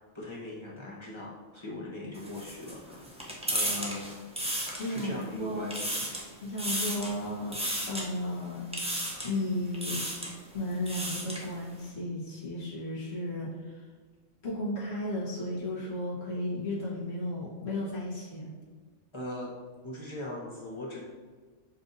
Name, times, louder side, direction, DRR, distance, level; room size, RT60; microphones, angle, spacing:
voice 1, 0.0-3.1 3.5-4.1 4.9-6.2 19.1-21.0, left 1 dB, 30° left, -5 dB, 0.7 m, -40 dB
sound 1, 2.1-5.2 5.6-6.3 6.6-7.1 7.5-8.0 8.7-9.4 9.7-10.3 10.7-11.5, right 1 dB, 10° right, 0.4 m, -33 dB
voice 2, 4.8-5.8 6.4-7.6 7.9-8.7 9.2-10.1 10.5-13.8 14.4-18.5, left 1 dB, 60° left, -6 dB, 1.4 m, -34 dB
7.0 x 2.5 x 2.6 m, 1.5 s
omnidirectional pair, 1.2 m